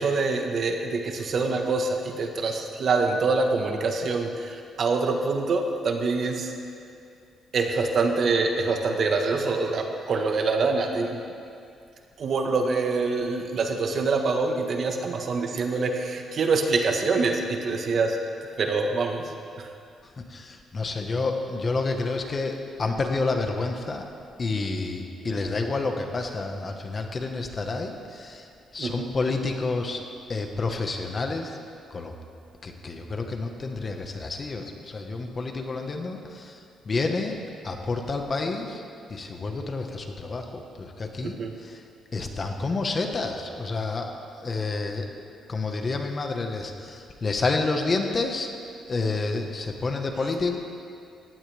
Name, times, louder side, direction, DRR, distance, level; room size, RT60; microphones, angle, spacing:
voice 1, 0.0-6.5 7.5-11.2 12.2-18.2 18.6-19.3 19.6-19.7 25.2-25.3 28.8-29.1 41.2-41.5, right 3 dB, 55° right, 3 dB, 1.5 m, -25 dB
voice 2, 20.2-24.1 24.4-28.5 28.7-30.0 30.3-31.6 31.9-32.1 32.6-36.6 36.8-38.8 39.1-41.8 42.1-45.0 45.5-48.5 48.9-50.6, left 3 dB, 35° left, 4 dB, 1.5 m, -29 dB
18.0 x 15.5 x 3.6 m, 2.5 s
cardioid pair, 90°, 0 cm